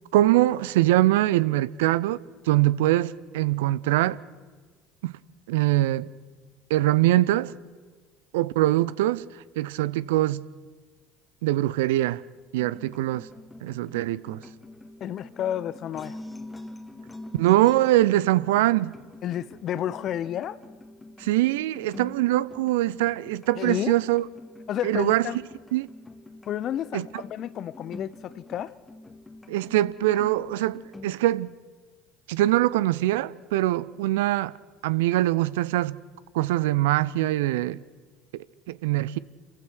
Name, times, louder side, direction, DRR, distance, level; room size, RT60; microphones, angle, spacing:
voice 1, 0.1-2.2 2.5-4.2 5.0-5.1 5.5-6.1 6.7-7.5 8.3-9.3 9.6-10.4 11.4-12.2 12.5-13.3 13.6-14.4 17.4-18.9 21.2-24.2 24.8-25.3 25.7-25.9 26.9-27.1 29.5-31.5 32.3-34.5 34.8-36.0 36.3-37.8 38.3-39.2, right 15 dB, 70° right, 0.6 m, -23 dB
sound 1, 12.6-31.2, left 2 dB, 15° left, 2.1 m, -45 dB
voice 2, 15.0-16.2 19.2-20.6 23.6-24.0 24.7-25.4 26.5-28.7, left 11 dB, 50° left, 0.8 m, -31 dB
28.5 x 15.5 x 6.3 m
hypercardioid pair, 65°, 0 cm